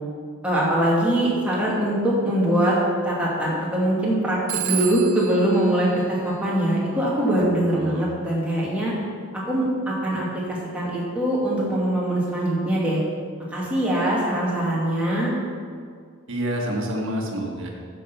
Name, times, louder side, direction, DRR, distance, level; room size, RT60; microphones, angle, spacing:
voice 1, 0.4-2.8 3.0-8.9 9.3-13.0 13.5-15.3, right 1 dB, 5° right, -6 dB, 2.4 m, -22 dB
Telephone, 4.5-7.0, right 12 dB, 75° right, 0.7 m, -33 dB
voice 2, 7.7-8.1 16.3-17.7, equal, 55° right, -1 dB, 1.7 m, -28 dB
10.5 x 6.8 x 5.5 m, 2.1 s
head